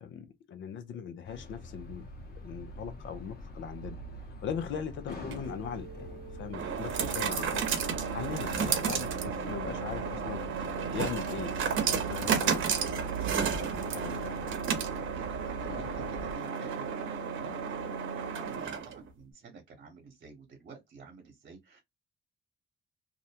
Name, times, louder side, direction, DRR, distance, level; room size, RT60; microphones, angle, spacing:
voice 1, 0.0-2.1 2.4-4.0 4.4-7.6 8.1-14.3, left 7 dB, 70° left, 0.6 m, -40 dB
sound 1, 1.2-16.4, right 1 dB, 50° left, 1.0 m, -43 dB
sound 2, 5.1-19.1, right 6 dB, 75° right, 0.8 m, -33 dB
sound 3, 8.5-17.6, right 6 dB, 40° right, 0.7 m, -50 dB
voice 2, 15.1-17.8 18.1-21.8, right 5 dB, 55° right, 1.0 m, -51 dB
2.5 x 2.1 x 2.7 m
cardioid pair, 90°, 20 cm